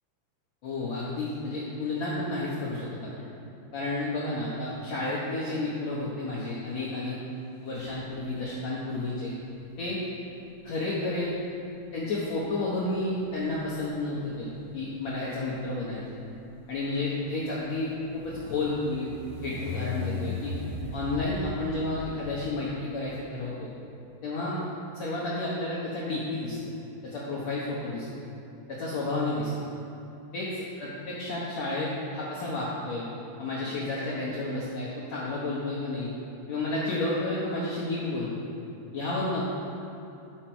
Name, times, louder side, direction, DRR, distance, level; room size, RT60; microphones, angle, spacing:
voice 1, 0.6-2.9 3.2-3.3 3.7-7.2 7.6-9.3 9.8-10.0 10.6-11.4 11.9-16.0 16.7-19.1 19.4-20.5 20.9-23.7 24.2-24.6 24.9-26.6 27.0-28.1 28.7-29.5 30.3-30.5 30.8-33.1 33.4-36.1 36.5-38.4 38.9-39.5, left 2 dB, 80° left, -7 dB, 1.5 m, -31 dB
sound 1, 7.7-8.4 9.5-23.2, left 3 dB, 45° right, 3.3 m, -41 dB
12.0 x 6.1 x 4.5 m, 2.8 s
omnidirectional pair, 4.8 m